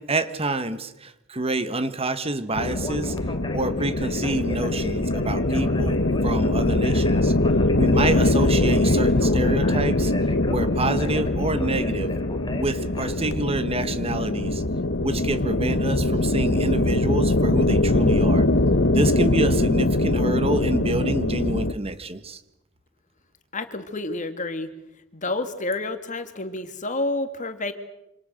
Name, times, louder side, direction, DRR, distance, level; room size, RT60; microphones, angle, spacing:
voice 1, 0.0-3.2 3.5-7.3 7.8-10.1 10.5-12.1 12.5-14.6 15.0-18.4 18.9-22.4, right 2 dB, 30° right, 12 dB, 1.4 m, -27 dB
sound 1, 2.6-21.7, left 2 dB, 65° left, 1.4 m, -22 dB
Conversation, 2.6-13.1, left 1 dB, 25° left, 3.1 m, -37 dB
voice 2, 23.5-24.7 25.1-27.7, left 2 dB, 40° left, 9 dB, 2.2 m, -29 dB
27.0 x 26.5 x 6.7 m, 0.85 s
head